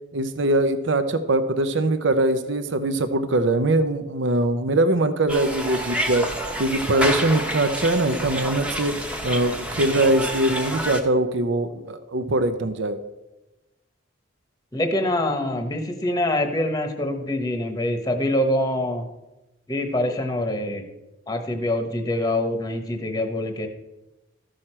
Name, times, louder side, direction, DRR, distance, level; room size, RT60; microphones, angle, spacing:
voice 1, 0.1-6.3 6.6-13.0, right 2 dB, 70° right, 10 dB, 0.7 m, -22 dB
sound 1, 5.3-11.0, right 1 dB, 5° right, 0.9 m, -28 dB
voice 2, 14.7-19.1 19.7-20.8 21.3-23.7, left 1 dB, 20° left, 5 dB, 1.0 m, -25 dB
13.5 x 6.4 x 4.4 m, 1.0 s
head